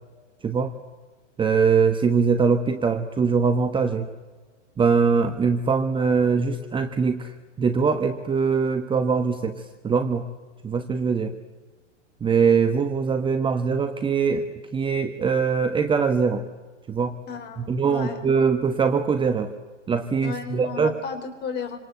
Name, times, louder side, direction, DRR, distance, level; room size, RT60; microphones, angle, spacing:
voice 1, 0.4-0.7 1.4-4.1 4.8-10.2 10.6-11.3 12.2-16.4 16.9-17.2 17.6-19.5 19.9-20.9, right 5 dB, 15° right, 8 dB, 1.3 m, -22 dB
voice 2, 17.3-18.2 20.2-21.8, left 5 dB, 25° left, 8 dB, 4.4 m, -34 dB
27.0 x 26.5 x 8.1 m, 1.3 s
figure-of-eight pair, 110°, 37 cm